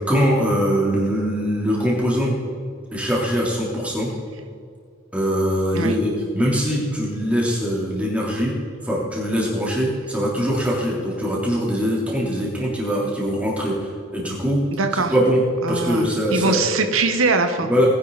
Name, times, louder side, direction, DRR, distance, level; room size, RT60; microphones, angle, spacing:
voice 1, 0.1-2.3 2.9-4.1 5.1-8.5 8.8-14.6 14.9-15.4 15.7-16.6 17.6-17.9, equal, 5° right, -5 dB, 3.3 m, -22 dB
voice 2, 14.8-15.1 15.6-17.7, right 3 dB, 85° right, 6 dB, 1.1 m, -22 dB
20.0 x 10.0 x 4.1 m, 2.2 s
head